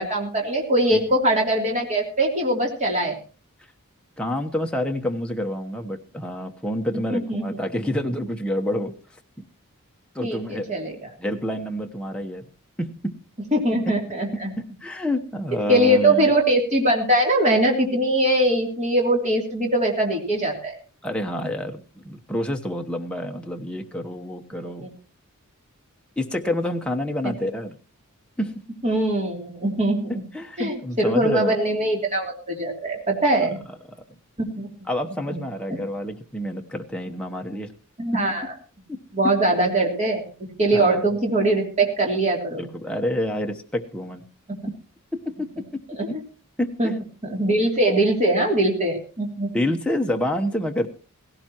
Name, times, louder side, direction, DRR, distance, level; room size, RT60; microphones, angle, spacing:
voice 1, 0.0-3.2 7.1-7.4 10.2-10.9 13.5-14.5 15.7-20.7 27.2-27.3 28.8-30.1 30.6-33.6 34.5-34.7 35.3-35.4 38.0-38.5 39.1-40.2 40.6-42.6 46.0-46.1 46.8-46.9 47.2-49.5, right 1 dB, 30° right, 0 dB, 3.1 m, -21 dB
voice 2, 4.2-8.9 10.1-10.7 11.2-12.4 12.8-13.1 14.3-16.3 21.0-24.9 26.2-27.7 28.4-28.5 30.3-31.6 34.9-37.7 38.9-39.0 40.7-41.1 42.6-44.2 45.1-45.6 46.1-46.2 46.6-46.9 49.5-50.9, left 1 dB, 5° left, 2 dB, 1.0 m, -28 dB
17.0 x 16.5 x 3.0 m, 0.36 s
head